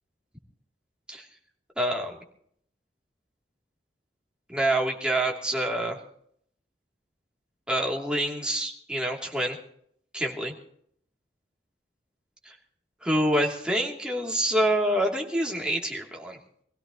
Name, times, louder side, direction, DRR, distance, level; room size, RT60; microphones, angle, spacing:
voice 1, 1.8-2.2 4.5-6.0 7.7-9.6 10.1-10.5 12.5-12.6 13.0-16.4, right 1 dB, 5° right, -1 dB, 2.8 m, -26 dB
25.0 x 16.5 x 3.0 m, 0.66 s
head